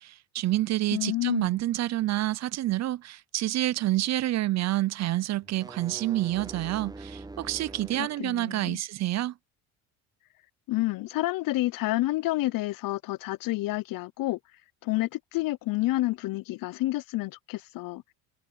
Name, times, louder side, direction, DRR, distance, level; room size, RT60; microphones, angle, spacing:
voice 1, 0.0-9.3, right 15 dB, 45° right, 0.5 m, -28 dB
voice 2, 0.9-1.6 8.0-8.8 10.7-14.4 14.8-18.0, left 18 dB, 55° left, 0.7 m, -29 dB
sound 1, 5.4-8.2, right 3 dB, 10° right, 0.8 m, -43 dB
supercardioid pair, 85°, 40 cm